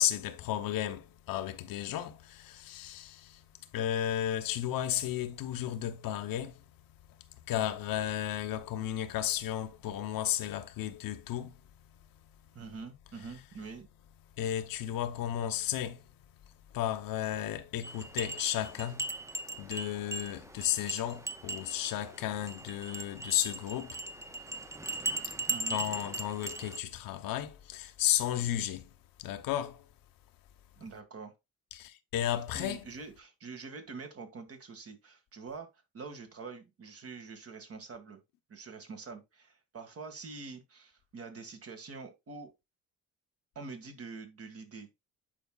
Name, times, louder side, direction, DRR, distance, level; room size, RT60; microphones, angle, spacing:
voice 1, 0.0-6.6 7.1-7.2 7.4-11.6 14.4-16.1 16.5-19.1 19.6-24.1 25.2-25.4 25.7-29.9 31.7-32.9, left 11 dB, 85° left, 1.0 m, -34 dB
voice 2, 12.5-13.9 25.5-25.8 30.8-31.3 32.5-35.7 35.9-38.2 38.5-42.5 43.6-44.9, right 4 dB, 45° right, 2.0 m, -45 dB
sound 1, 17.8-26.8, right 2 dB, 10° right, 0.5 m, -39 dB
9.9 x 5.0 x 2.4 m
cardioid pair, 130°, 33 cm